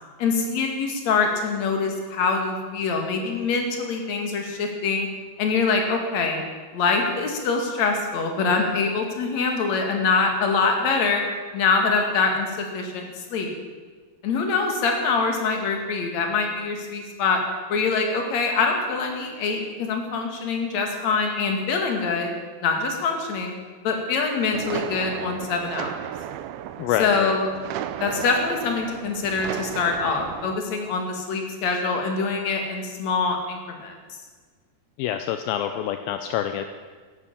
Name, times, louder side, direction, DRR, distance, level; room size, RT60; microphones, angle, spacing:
voice 1, 0.2-5.1 5.4-6.4 6.7-11.2 11.5-13.5 14.2-17.4 17.7-23.5 23.8-26.0 27.0-27.5 28.0-33.9, left 4 dB, 50° left, 3 dB, 3.0 m, -24 dB
sound 1, 24.5-30.6, right 11 dB, 85° right, 2.5 m, -34 dB
voice 2, 26.8-27.4 35.0-36.8, left 10 dB, 80° left, 8 dB, 2.4 m, -26 dB
15.0 x 11.5 x 7.3 m, 1.5 s
omnidirectional pair, 4.4 m